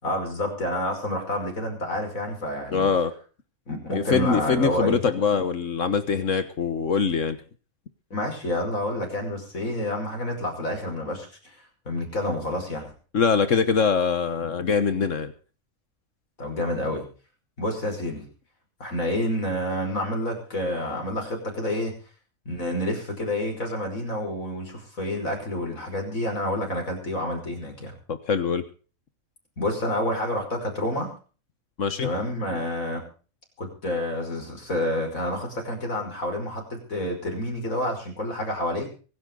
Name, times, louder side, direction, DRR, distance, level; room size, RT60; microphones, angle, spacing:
voice 1, 0.0-2.9 3.7-5.0 8.1-11.6 11.9-12.9 16.4-17.1 17.6-18.3 18.8-21.9 22.5-27.9 29.6-31.1 32.0-33.0 33.6-38.9, left 1 dB, 80° left, 2 dB, 5.9 m, -29 dB
voice 2, 2.7-3.1 3.9-7.4 13.1-15.3 28.1-28.6 31.8-32.1, left 5 dB, 65° left, 10 dB, 1.6 m, -23 dB
24.5 x 11.5 x 3.8 m, 0.38 s
omnidirectional pair, 1.4 m